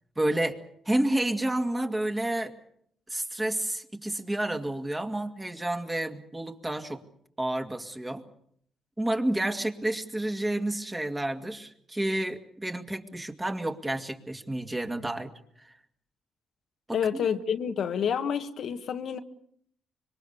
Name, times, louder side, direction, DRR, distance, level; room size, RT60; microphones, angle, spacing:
voice 1, 0.2-0.6 0.9-2.5 3.1-7.0 7.4-8.2 9.0-15.3 15.6-15.7 16.9-17.3, right 1 dB, 15° right, 5 dB, 2.3 m, -30 dB
voice 2, 16.9-19.2, left 7 dB, 65° left, 7 dB, 1.5 m, -28 dB
26.0 x 22.5 x 6.9 m, 0.67 s
cardioid pair, 90°, 0 cm